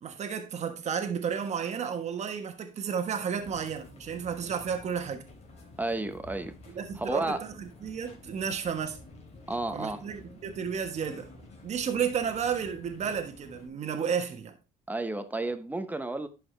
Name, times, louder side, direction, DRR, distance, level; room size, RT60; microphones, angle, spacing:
voice 1, 0.0-5.2 6.7-7.5 7.8-9.0 9.7-11.3 11.6-14.5, right 7 dB, 50° right, 1.3 m, -32 dB
Beach bar, 3.3-13.7, left 2 dB, 50° left, 3.2 m, -50 dB
voice 2, 5.8-6.5 7.0-7.4 9.5-10.0 14.9-16.3, right 2 dB, 10° right, 0.9 m, -32 dB
11.0 x 4.9 x 3.3 m
cardioid pair, 110°, 15 cm